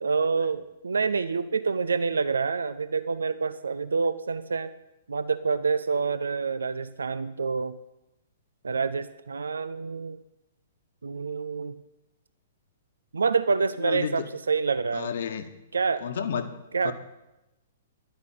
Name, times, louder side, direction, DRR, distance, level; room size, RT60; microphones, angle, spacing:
voice 1, 0.0-4.7 5.1-7.8 8.6-10.2 11.0-11.7 13.1-15.1 15.7-16.1 16.7-16.9, right 5 dB, 70° right, 14 dB, 0.7 m, -27 dB
voice 2, 13.8-14.2 14.9-15.5 16.0-16.5 16.8-16.9, left 7 dB, 55° left, 9 dB, 1.4 m, -31 dB
11.0 x 8.9 x 9.3 m, 0.96 s
figure-of-eight pair, 115°, 0 cm